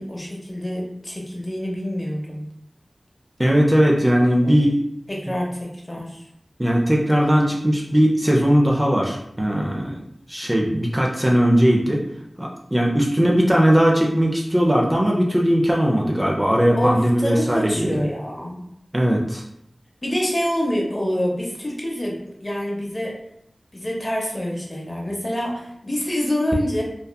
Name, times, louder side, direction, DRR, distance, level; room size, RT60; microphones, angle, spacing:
voice 1, 0.0-2.4 4.4-4.7 5.1-6.2 16.7-18.6 20.0-23.2 23.7-26.8, equal, 30° left, -2 dB, 0.7 m, -26 dB
voice 2, 3.4-4.8 5.3-5.4 6.6-10.0 10.3-12.0 12.4-18.0 18.9-19.4, equal, 20° right, -2 dB, 0.4 m, -19 dB
2.7 x 2.2 x 2.2 m, 0.74 s
wide cardioid pair, 45°, 0 cm